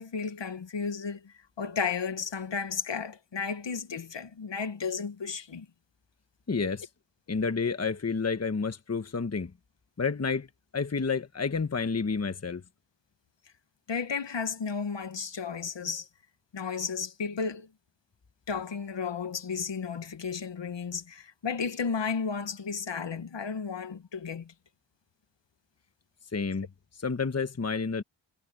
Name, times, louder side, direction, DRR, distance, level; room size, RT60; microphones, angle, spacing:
voice 1, 0.0-5.7 13.9-16.1 16.5-17.7 18.5-24.5, left 5 dB, 60° left, 1.7 m, -33 dB
voice 2, 6.5-6.9 7.3-9.5 10.0-10.5 10.7-12.6 26.3-26.7 27.0-28.0, left 5 dB, 30° left, 1.3 m, -29 dB
wide cardioid pair, 75°, 48 cm